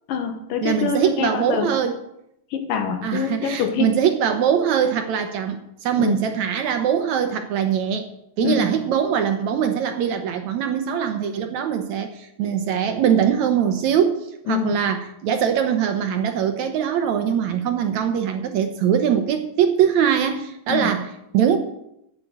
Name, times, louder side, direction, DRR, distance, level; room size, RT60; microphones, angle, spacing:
voice 1, 0.1-1.7 2.5-4.0 6.0-6.2 8.4-8.7 14.5-14.8 20.7-20.9, left 6 dB, 80° left, 5 dB, 3.1 m, -25 dB
voice 2, 0.6-2.0 3.0-8.1 8.4-21.6, right 8 dB, 70° right, 7 dB, 1.9 m, -22 dB
9.9 x 8.6 x 7.9 m, 0.80 s
omnidirectional pair, 3.9 m